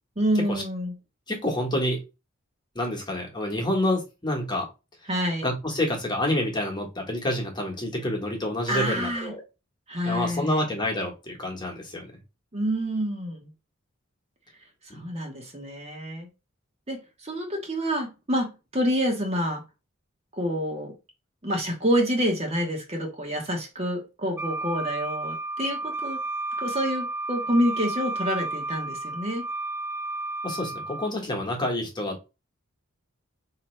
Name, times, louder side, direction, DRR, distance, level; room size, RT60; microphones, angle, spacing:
voice 1, 0.2-0.9 5.1-5.4 8.7-9.3 9.9-10.6 12.5-13.5 14.9-16.3 16.9-17.0 17.2-19.6 20.4-20.9 21.4-26.2 26.6-29.4, equal, 30° right, 1.2 m, -27 dB
voice 2, 1.3-2.0 2.7-4.7 5.4-9.4 10.0-12.1 14.9-15.0 30.4-32.2, left 1 dB, 20° left, 1.3 m, -28 dB
Wind instrument woodwind instrument, 24.4-31.1, right 2 dB, 10° right, 0.4 m, -32 dB
4.9 x 2.9 x 3.2 m
head